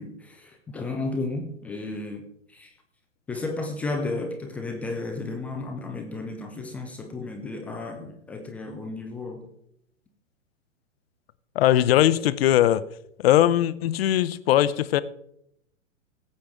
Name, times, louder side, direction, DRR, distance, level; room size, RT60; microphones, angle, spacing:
voice 1, 0.0-2.7 3.3-9.5, left 3 dB, 5° left, 0.3 m, -33 dB
voice 2, 11.5-12.8 13.2-15.0, left 12 dB, 50° left, 0.7 m, -20 dB
17.0 x 7.8 x 3.6 m
figure-of-eight pair, 115°, 39 cm